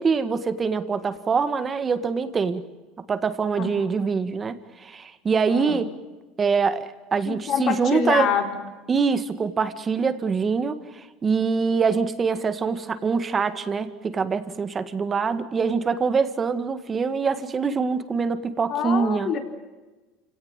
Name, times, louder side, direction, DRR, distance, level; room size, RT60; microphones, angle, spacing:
voice 1, 0.0-2.7 3.1-5.9 6.4-8.3 8.9-19.3, right 5 dB, 25° right, 11 dB, 1.8 m, -24 dB
voice 2, 5.5-5.8 7.3-8.6 18.7-19.4, left 7 dB, 45° left, 5 dB, 4.2 m, -26 dB
29.0 x 17.5 x 9.0 m, 1.2 s
supercardioid pair, 130°, 0 cm